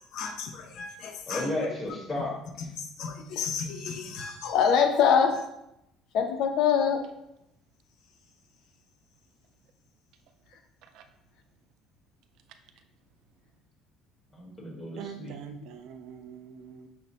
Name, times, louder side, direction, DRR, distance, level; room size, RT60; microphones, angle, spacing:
voice 1, 0.1-1.5 3.0-5.4 6.1-7.0, left 7 dB, 60° left, 4 dB, 0.5 m, -26 dB
voice 2, 1.3-2.7 14.3-15.3, left 1 dB, 15° left, -4 dB, 1.3 m, -34 dB
voice 3, 15.0-16.9, right 8 dB, 60° right, 8 dB, 0.4 m, -44 dB
6.2 x 2.1 x 3.9 m, 0.84 s
cardioid pair, 175°, 0 cm